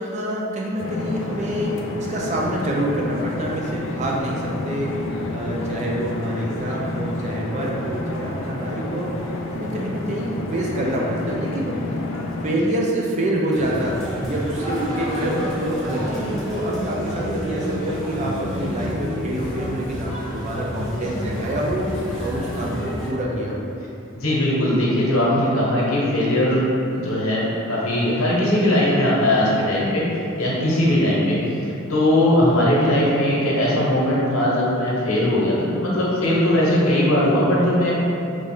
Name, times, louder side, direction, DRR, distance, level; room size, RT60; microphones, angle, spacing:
voice 1, 0.0-4.9 5.3-9.1 9.5-11.8 12.4-21.9 22.2-23.7, right 1 dB, 35° right, -2 dB, 0.4 m, -26 dB
sound 1, 0.8-12.5, left 2 dB, 65° left, 0.3 m, -29 dB
sound 2, 13.5-23.1, equal, ahead, 0.7 m, -29 dB
voice 2, 24.2-38.0, left 1 dB, 80° left, -5 dB, 0.9 m, -20 dB
3.2 x 2.5 x 3.5 m, 2.8 s
head